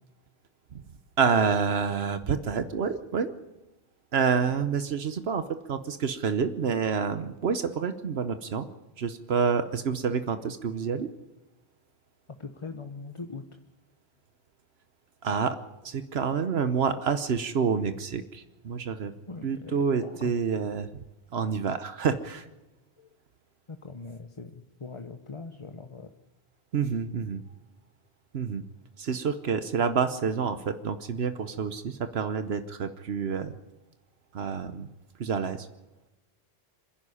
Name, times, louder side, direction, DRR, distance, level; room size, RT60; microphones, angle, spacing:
voice 1, 1.2-3.3 4.1-8.7 9.0-11.1 15.2-15.6 15.8-19.1 19.4-20.9 21.3-22.5 26.7-27.4 28.3-28.6 29.0-33.5 34.3-34.9 35.2-35.7, right 6 dB, 80° right, 10 dB, 1.2 m, -28 dB
voice 2, 12.4-13.4 19.3-19.7 20.0-20.2 23.0-23.1 23.7-26.1, left 4 dB, 30° left, 6 dB, 1.0 m, -41 dB
26.5 x 11.0 x 9.9 m, 1.1 s
omnidirectional pair, 1.0 m